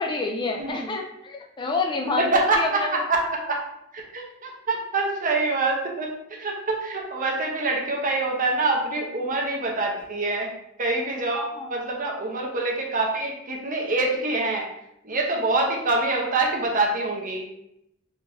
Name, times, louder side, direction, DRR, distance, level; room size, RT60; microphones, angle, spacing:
voice 1, 0.0-3.0 11.3-11.7, left 3 dB, 20° left, 1 dB, 0.3 m, -28 dB
voice 2, 0.6-0.9 2.3-3.6 3.9-10.5 10.8-14.6 15.0-17.4, right 2 dB, 40° right, 0 dB, 0.8 m, -25 dB
3.9 x 2.6 x 3.4 m, 0.79 s
head